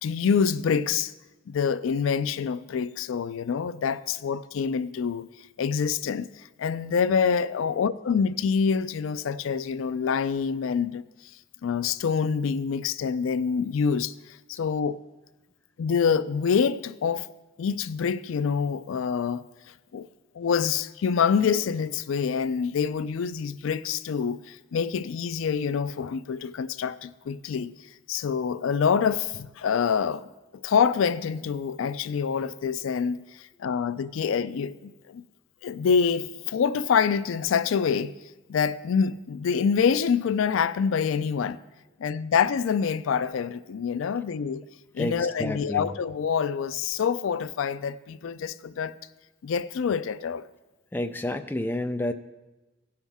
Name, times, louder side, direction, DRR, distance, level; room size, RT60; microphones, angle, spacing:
voice 1, 0.0-1.1 1.5-5.3 5.6-11.0 11.6-15.0 15.8-17.3 17.6-19.5 19.9-20.1 20.3-27.7 28.1-30.3 30.6-35.3 35.6-38.1 38.5-41.6 42.0-44.6 44.9-48.9 49.4-50.5, left 6 dB, 85° left, 0.4 m, -26 dB
voice 2, 45.0-45.9 50.9-52.1, left 1 dB, 10° left, 0.3 m, -30 dB
16.5 x 5.7 x 3.5 m
head